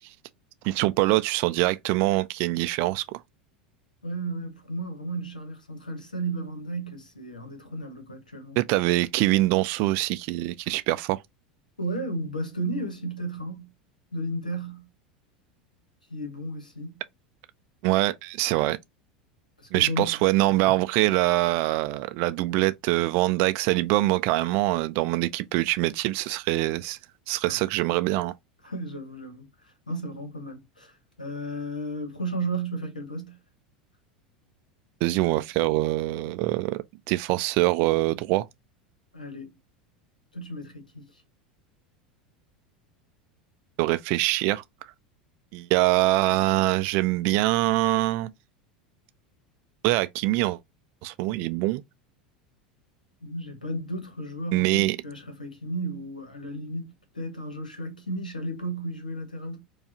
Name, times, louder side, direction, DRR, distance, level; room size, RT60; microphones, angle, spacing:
voice 1, 0.6-3.2 8.6-11.2 17.8-18.8 19.7-27.0 27.3-28.3 35.0-38.5 43.8-44.6 45.5-48.3 49.8-50.6 51.0-51.8 54.5-55.0, right 18 dB, 50° right, 0.3 m, -24 dB
voice 2, 4.0-8.6 11.8-13.7 14.1-14.9 16.1-17.0 19.6-20.3 27.4-27.6 28.6-33.4 39.1-39.6 40.3-41.2 53.2-59.6, right 1 dB, 90° left, 1.1 m, -34 dB
4.6 x 2.4 x 2.7 m
figure-of-eight pair, 80°, 4 cm